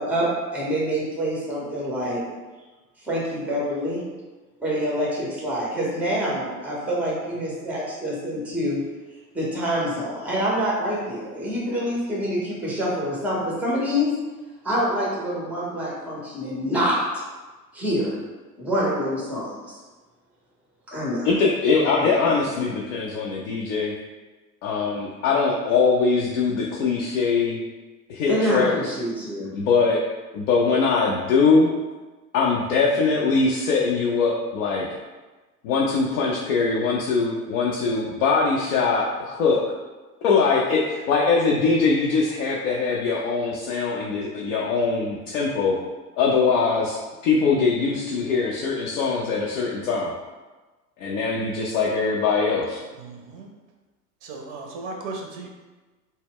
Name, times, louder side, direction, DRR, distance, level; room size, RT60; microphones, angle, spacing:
voice 1, 0.0-2.2 3.0-4.0 4.6-8.8 9.3-14.1 14.6-17.2 17.7-18.2 18.6-19.6 20.9-21.3 21.7-22.1 28.3-29.5, equal, 5° right, -5 dB, 0.5 m, -26 dB
voice 2, 21.2-23.9 24.6-27.6 28.1-28.9 29.5-30.0 30.3-31.7 32.3-34.9 35.6-39.6 40.2-45.8 46.2-50.1 51.0-52.8, left 4 dB, 55° left, -4 dB, 0.5 m, -22 dB
voice 3, 52.9-53.5 54.2-55.5, right 3 dB, 45° right, 1 dB, 0.6 m, -36 dB
2.1 x 2.0 x 3.5 m, 1.2 s
figure-of-eight pair, 85°, 47 cm